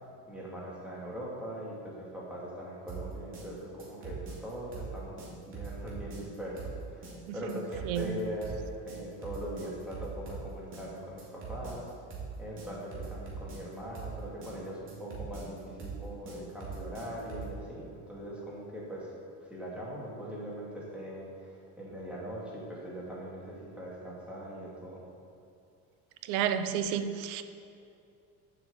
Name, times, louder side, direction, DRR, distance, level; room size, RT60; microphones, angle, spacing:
voice 1, 0.3-11.9 12.4-19.1 19.4-25.1, equal, 5° right, -6 dB, 2.6 m, -41 dB
sound 1, 2.9-17.6, right 5 dB, 35° right, 2.6 m, -42 dB
voice 2, 26.3-27.4, right 9 dB, 85° right, 10 dB, 0.8 m, -30 dB
7.6 x 7.0 x 7.2 m, 2.6 s
cardioid pair, 140°, 35 cm